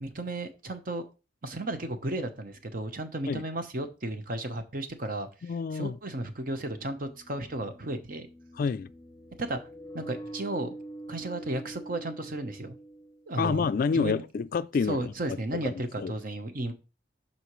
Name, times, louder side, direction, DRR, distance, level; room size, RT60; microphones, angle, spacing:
voice 1, 0.0-1.0 1.4-5.3 5.7-8.3 9.4-9.6 9.9-10.8 11.1-12.7 13.3-13.7 13.9-14.2 14.9-16.7, right 2 dB, 50° right, 1.0 m, -34 dB
voice 2, 5.4-6.0 8.6-8.9 13.4-15.0 15.5-16.1, left 5 dB, 50° left, 0.3 m, -28 dB
sound 1, 6.8-13.6, right 1 dB, 20° left, 0.8 m, -45 dB
12.5 x 4.3 x 3.1 m
head